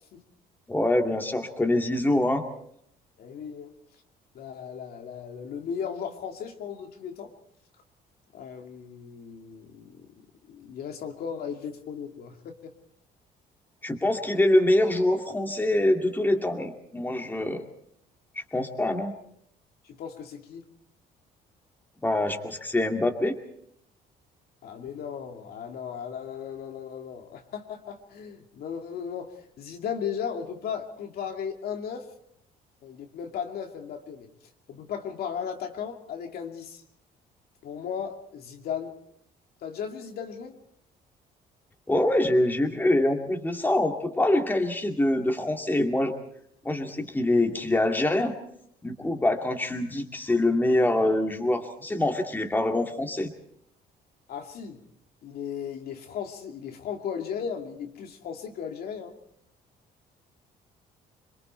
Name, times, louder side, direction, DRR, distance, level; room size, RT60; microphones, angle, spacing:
voice 1, 0.7-2.5 13.8-17.6 18.5-19.1 22.0-23.4 41.9-46.1 46.6-48.3 48.8-53.3, left 1 dB, 10° left, 4 dB, 2.4 m, -24 dB
voice 2, 3.2-3.7 4.3-7.3 8.3-10.1 10.5-12.7 19.8-20.6 24.6-32.1 32.8-34.3 34.7-36.8 37.6-38.9 39.6-40.6 54.3-54.8 55.2-59.2, left 7 dB, 65° left, 3 dB, 2.6 m, -36 dB
27.0 x 22.5 x 4.5 m, 0.70 s
cardioid pair, 110°, 17 cm